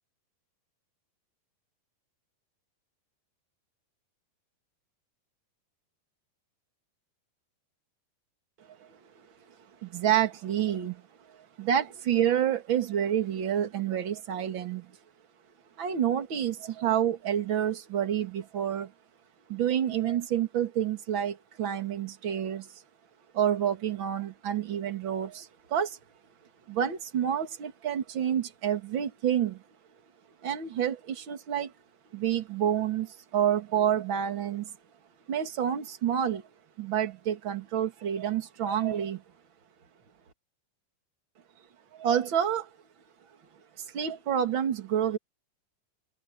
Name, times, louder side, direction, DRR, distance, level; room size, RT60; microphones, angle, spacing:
voice 1, 9.8-11.0 11.6-14.9 15.8-18.9 19.5-22.7 23.3-26.0 26.7-29.6 30.4-31.7 32.1-34.7 35.3-36.4 36.8-39.2 41.9-42.7 43.8-45.2, right 9 dB, 40° right, 2.1 m, -28 dB
omnidirectional pair, 4.6 m